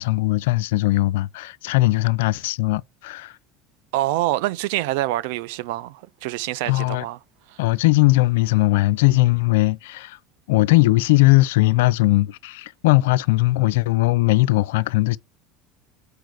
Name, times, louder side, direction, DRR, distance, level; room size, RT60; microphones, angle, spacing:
voice 1, 0.0-3.3 6.7-7.0 7.6-10.2 10.5-15.2, left 19 dB, 80° left, 0.3 m, -19 dB
voice 2, 3.9-7.2, right 16 dB, 75° right, 0.5 m, -25 dB
6.5 x 4.6 x 4.7 m
hypercardioid pair, 90°, 0 cm